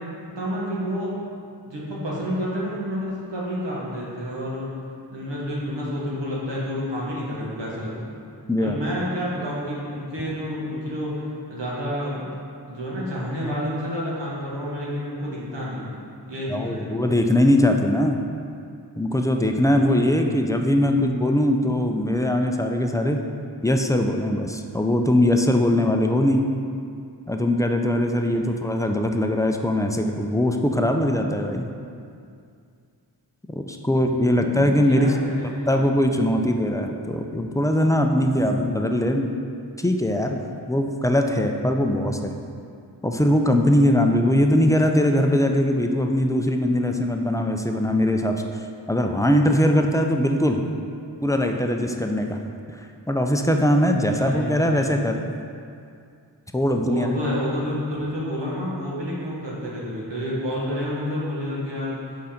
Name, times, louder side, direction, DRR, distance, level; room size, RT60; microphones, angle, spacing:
voice 1, 0.4-1.1 1.7-4.7 5.1-8.1 8.6-12.3 12.7-17.0 19.7-20.2 28.1-28.7 34.2-35.8 54.0-54.9 56.8-61.9, equal, 75° right, -6 dB, 1.5 m, -30 dB
voice 2, 16.5-18.2 19.0-23.2 23.6-26.4 27.3-31.7 33.6-35.1 35.7-39.3 39.8-40.4 40.7-42.3 43.0-48.6 48.9-50.6 51.2-52.4 53.1-55.2 56.5-57.1, left 1 dB, 10° left, 3 dB, 0.4 m, -21 dB
5.5 x 3.9 x 5.0 m, 2.4 s
wide cardioid pair, 50°, 44 cm